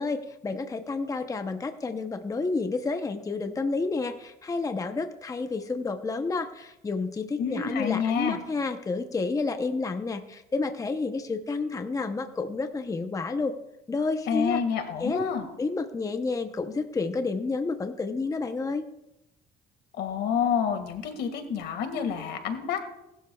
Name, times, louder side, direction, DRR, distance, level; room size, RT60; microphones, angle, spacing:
voice 1, 0.0-13.5 13.9-14.6 15.0-15.2 15.6-18.9, left 3 dB, 20° left, 7 dB, 0.7 m, -30 dB
voice 2, 7.4-8.4 14.3-15.5 19.9-22.8, left 7 dB, 75° left, 6 dB, 1.9 m, -28 dB
19.0 x 12.0 x 2.3 m, 0.89 s
cardioid pair, 110°, 17 cm